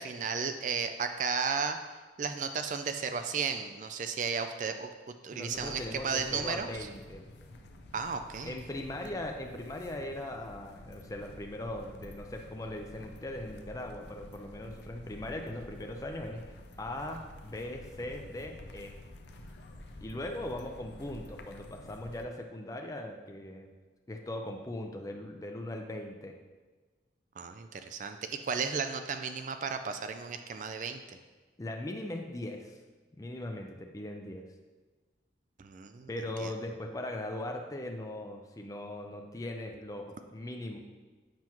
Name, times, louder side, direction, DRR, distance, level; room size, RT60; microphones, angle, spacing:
voice 1, 0.0-1.8 2.2-4.9 5.2-6.7 7.9-8.6 27.4-31.0 35.6-36.1 36.4-36.5, right 5 dB, 45° right, 8 dB, 0.3 m, -34 dB
voice 2, 5.3-7.2 8.4-16.4 16.8-18.9 20.0-23.7 24.1-26.4 31.6-32.8 33.2-34.4 36.1-40.8, left 1 dB, 20° left, 3 dB, 0.4 m, -39 dB
sound 1, 5.5-22.3, left 1 dB, 70° left, 0.5 m, -50 dB
7.6 x 5.8 x 3.0 m, 1.3 s
head